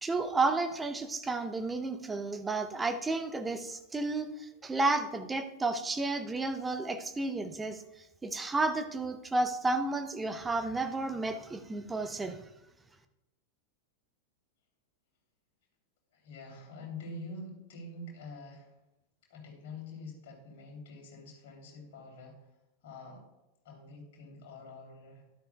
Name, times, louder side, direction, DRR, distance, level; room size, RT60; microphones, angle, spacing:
voice 1, 0.0-7.8 8.2-12.4, right 3 dB, 10° right, 8 dB, 0.8 m, -32 dB
voice 2, 16.1-18.7 19.3-22.4 22.8-23.2 23.6-25.2, left 2 dB, 55° left, 0 dB, 3.2 m, -46 dB
12.5 x 11.5 x 2.3 m, 0.94 s
figure-of-eight pair, 90°, 0 cm